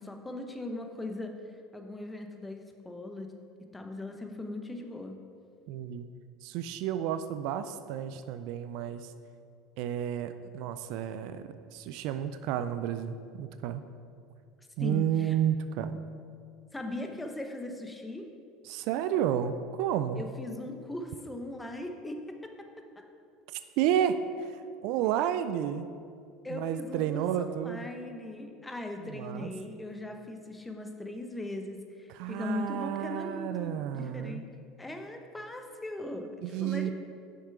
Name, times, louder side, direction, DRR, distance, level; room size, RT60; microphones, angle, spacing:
voice 1, 0.0-1.3 1.7-3.3 3.6-5.2 14.8-15.3 16.7-18.3 20.2-22.7 22.9-23.0 26.4-34.5 34.8-36.9, left 2 dB, 10° left, 5 dB, 0.9 m, -39 dB
voice 2, 5.7-6.1 6.4-9.1 9.8-13.8 14.8-16.0 18.6-20.2 23.5-25.9 26.5-27.9 29.0-29.5 32.1-34.4 36.4-36.9, right 10 dB, 65° right, 11 dB, 0.3 m, -31 dB
6.5 x 6.5 x 4.7 m, 2.3 s
hypercardioid pair, 80°, 0 cm